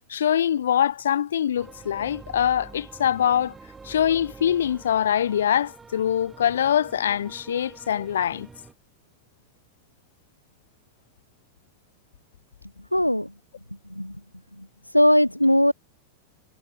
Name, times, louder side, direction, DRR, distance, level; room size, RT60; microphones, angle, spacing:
voice 1, 0.1-3.5 3.8-8.5, left 9 dB, 65° left, 2.2 m, -23 dB
sound 1, 1.6-8.7, right 4 dB, 15° right, 5.8 m, -46 dB
voice 2, 12.9-13.3 13.9-14.2 14.6-14.7 14.9-15.7, equal, 90° left, 0.8 m, -19 dB
figure-of-eight pair, 90°, 0 cm